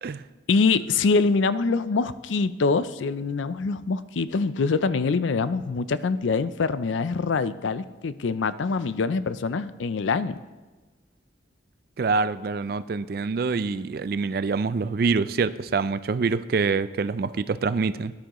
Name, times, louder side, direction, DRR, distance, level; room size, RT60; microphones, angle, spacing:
voice 1, 0.5-10.3, left 4 dB, 85° left, 14 dB, 0.5 m, -24 dB
voice 2, 12.0-18.1, right 4 dB, 50° right, 14 dB, 0.4 m, -25 dB
17.5 x 10.5 x 3.0 m, 1.2 s
head